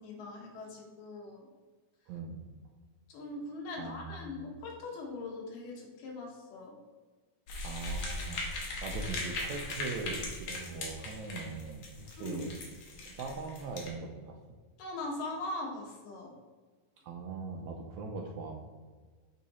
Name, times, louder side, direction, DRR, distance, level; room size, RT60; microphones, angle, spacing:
voice 1, 0.0-1.5 3.1-6.8 12.2-12.4 14.8-16.3, left 2 dB, 90° left, 0 dB, 2.9 m, -41 dB
voice 2, 2.1-2.5 3.8-4.4 7.6-12.6 13.0-14.4 17.0-18.6, right 4 dB, 75° right, 2 dB, 1.7 m, -41 dB
sound 1, 7.5-13.9, left 2 dB, 65° left, 2.2 m, -39 dB
7.4 x 3.8 x 4.1 m, 1.4 s
omnidirectional pair, 3.7 m